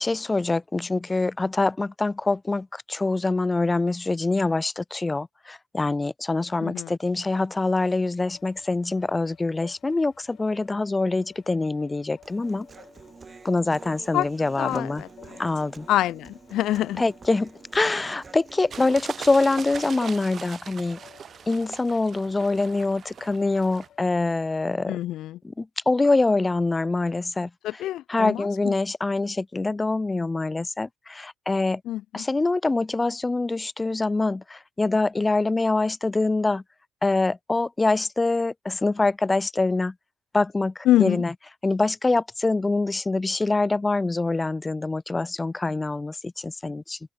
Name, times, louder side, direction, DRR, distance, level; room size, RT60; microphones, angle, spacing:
voice 1, 0.0-12.7 13.4-15.0 15.4-15.9 17.0-21.0 21.5-24.9 25.6-27.5 28.1-31.8 32.1-36.6 37.0-39.9 40.3-41.3 41.6-47.0, left 3 dB, 20° left, 0.3 m, -25 dB
voice 2, 6.6-6.9 14.1-14.3 14.6-15.4 15.9-17.0 24.9-25.4 27.6-28.7 31.8-32.3 40.8-41.2, left 13 dB, 85° left, 0.5 m, -26 dB
sound 1, 8.2-24.8, left 10 dB, 65° left, 3.8 m, -55 dB
Human voice, 12.2-20.2, right 4 dB, 35° right, 2.5 m, -47 dB
sound 2, 18.7-23.9, right 7 dB, 50° right, 0.8 m, -40 dB
open air
cardioid pair, 90°, 0 cm